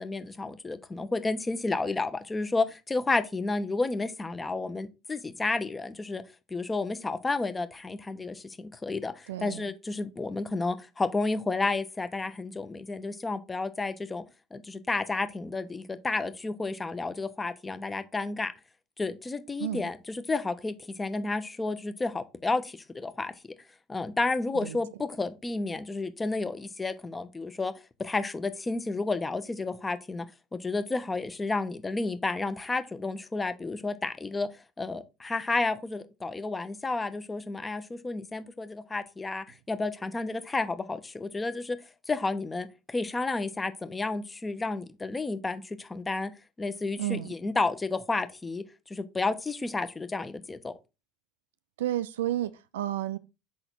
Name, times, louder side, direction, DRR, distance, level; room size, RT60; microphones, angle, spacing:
voice 1, 0.0-6.2 6.5-14.2 14.5-18.5 19.0-23.3 23.9-27.7 28.0-30.3 30.6-34.5 34.8-41.8 42.1-46.3 46.6-50.7, left 3 dB, 20° left, 0.9 m, -31 dB
voice 2, 9.3-9.7 19.6-19.9 24.5-24.8 47.0-47.3 51.8-53.2, right 13 dB, 80° right, 0.4 m, -31 dB
5.9 x 3.9 x 4.5 m
hypercardioid pair, 70°, 0 cm